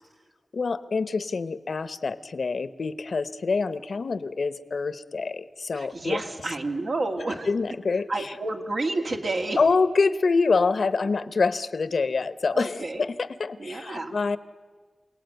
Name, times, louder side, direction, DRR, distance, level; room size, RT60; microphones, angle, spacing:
voice 1, 0.5-6.2 7.5-8.3 9.6-14.4, left 4 dB, 80° left, 14 dB, 0.9 m, -26 dB
voice 2, 5.7-7.5 8.1-9.6 12.5-13.0 13.6-14.2, right 2 dB, 75° right, 3 dB, 2.2 m, -30 dB
27.5 x 18.0 x 9.2 m, 1.5 s
wide cardioid pair, 85°, 0 cm